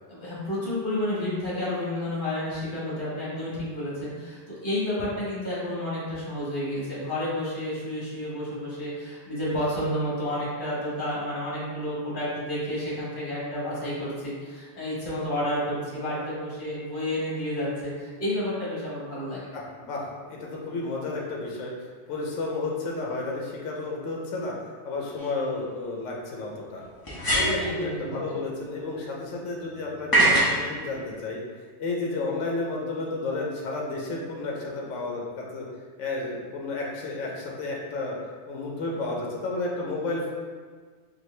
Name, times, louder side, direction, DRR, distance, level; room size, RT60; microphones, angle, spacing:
voice 1, 0.1-19.5 27.6-28.4, left 1 dB, 45° left, -7 dB, 1.5 m, -30 dB
voice 2, 19.5-21.7 22.1-24.5 24.8-26.8 27.3-31.4 31.8-35.7 36.0-38.1 38.5-40.3, left 3 dB, 75° left, -2 dB, 1.0 m, -32 dB
sound 1, 25.2-25.3 27.0-27.7 30.1-30.6, right 1 dB, 20° left, 0.7 m, -21 dB
4.4 x 2.6 x 3.1 m, 1.6 s
omnidirectional pair, 1.3 m